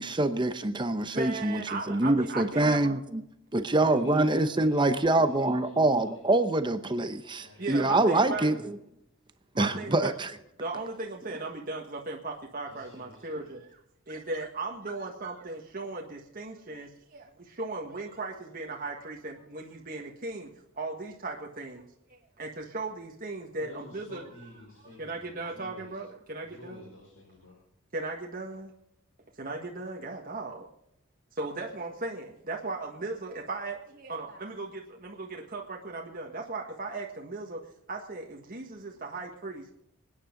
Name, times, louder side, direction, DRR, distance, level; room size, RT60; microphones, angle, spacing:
voice 1, 0.0-3.0 3.5-8.6 9.6-10.3, right 2 dB, 20° right, 0.7 m, -25 dB
voice 2, 1.1-3.0 7.6-8.5 9.5-10.1 10.6-13.8 14.1-20.5 20.7-24.2 25.0-26.9 27.9-28.7 29.4-30.7 31.3-37.6 37.9-39.7, right 3 dB, 40° right, 1.6 m, -37 dB
voice 3, 3.7-6.2 7.4-8.7 12.6-13.4 23.6-26.0 26.4-27.6, left 3 dB, 70° left, 5.4 m, -48 dB
26.5 x 9.7 x 3.9 m
head